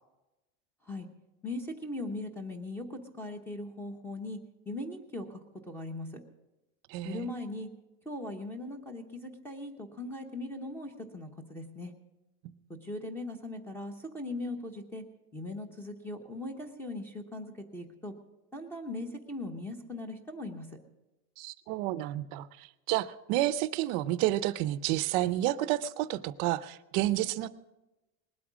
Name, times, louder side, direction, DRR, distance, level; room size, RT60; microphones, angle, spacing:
voice 1, 1.4-4.4 4.7-5.4 5.7-6.2 7.0-7.7 8.0-11.9 12.8-15.0 15.3-18.1 18.5-20.7, left 2 dB, 5° left, 7 dB, 0.9 m, -39 dB
voice 2, 6.9-7.3 21.4-27.5, right 15 dB, 50° right, 15 dB, 0.6 m, -30 dB
20.0 x 8.6 x 6.2 m, 1.0 s
cardioid pair, 180°, 36 cm